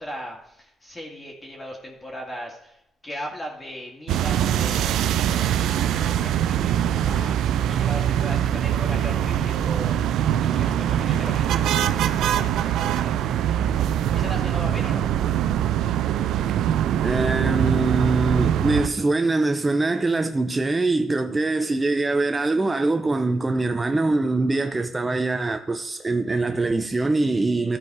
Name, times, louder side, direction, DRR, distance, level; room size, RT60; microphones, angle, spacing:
voice 1, 0.0-13.2 13.5-15.1, equal, 20° left, 2.3 m, -38 dB
sound 1, 4.1-18.9, right 10 dB, 80° right, 0.5 m, -23 dB
voice 2, 17.0-27.8, right 2 dB, 20° right, 0.7 m, -23 dB
13.5 x 4.6 x 4.8 m
cardioid pair, 90°, 0 cm